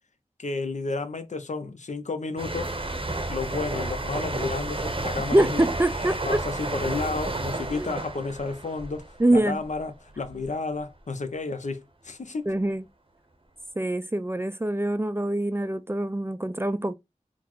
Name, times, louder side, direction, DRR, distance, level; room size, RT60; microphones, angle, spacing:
voice 1, 0.4-2.7 3.3-5.7 6.3-12.5, left 3 dB, 65° left, 0.5 m, -32 dB
sound 1, 2.4-9.8 10.1-10.4, right 2 dB, 45° right, 0.7 m, -31 dB
voice 2, 5.3-6.4 7.7-7.9 9.2-9.6 12.5-12.8 13.8-16.9, right 1 dB, 20° right, 0.3 m, -24 dB
3.9 x 2.0 x 2.9 m
wide cardioid pair, 45°, 13 cm